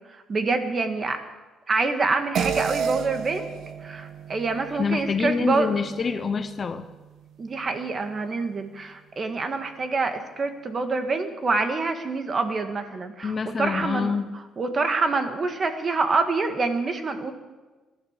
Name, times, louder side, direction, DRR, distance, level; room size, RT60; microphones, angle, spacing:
voice 1, 0.1-1.2 1.7-3.5 3.8-5.7 7.4-14.1 14.6-17.3, right 3 dB, 35° right, 7 dB, 1.8 m, -26 dB
sound 1, 2.3-7.1, right 7 dB, 65° right, 1.0 m, -32 dB
voice 2, 4.8-6.9 13.2-14.3, left 5 dB, 35° left, 10 dB, 1.0 m, -26 dB
19.0 x 11.5 x 6.7 m, 1.2 s
cardioid pair, 110°, 0 cm